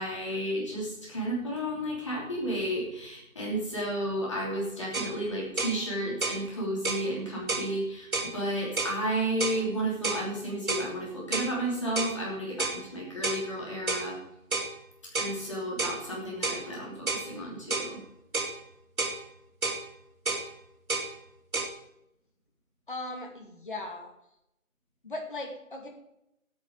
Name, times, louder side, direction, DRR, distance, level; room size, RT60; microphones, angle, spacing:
voice 1, 0.0-14.2 15.1-18.0, right 1 dB, 20° left, -4 dB, 3.1 m, -32 dB
sound 1, 4.9-5.1 5.6-5.8 6.2-6.4 6.8-7.1 7.5-7.7 8.1-8.3 8.8-9.0 9.4-9.6 10.0-10.3 10.7-10.9 11.3-11.5 12.0-12.2 12.6-12.8 13.2-13.4 13.9-14.1 14.5-14.7 15.1-15.4 15.8-16.0 16.4-16.6 17.1-17.3 17.7-17.9 18.3-18.6 19.0-19.2 19.6-19.8 20.3-20.5 20.9-21.1 21.5-21.7, right 3 dB, 75° right, 2.5 m, -30 dB
voice 2, 22.9-24.1 25.0-25.9, left 2 dB, 35° left, 2 dB, 2.5 m, -38 dB
13.0 x 10.5 x 5.0 m, 0.81 s
figure-of-eight pair, 170°, 42 cm